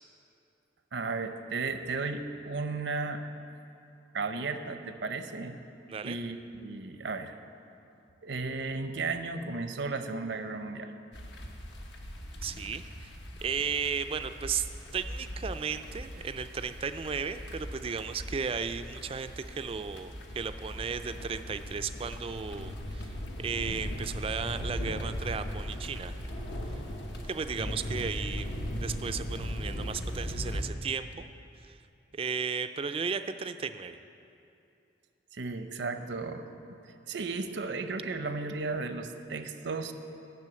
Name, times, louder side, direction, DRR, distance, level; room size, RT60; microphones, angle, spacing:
voice 1, 0.9-3.2 4.1-5.6 6.0-7.4 8.2-10.9 35.3-36.8 37.1-39.9, right 3 dB, 75° right, 8 dB, 0.6 m, -34 dB
sound 1, 11.1-30.6, equal, 75° left, 1.0 m, -38 dB
voice 2, 12.4-13.1 13.4-14.7 14.9-26.2 27.2-31.3 31.6-31.8 32.1-34.0, right 6 dB, 30° right, 10 dB, 0.3 m, -35 dB
10.5 x 6.3 x 7.5 m, 2.7 s
head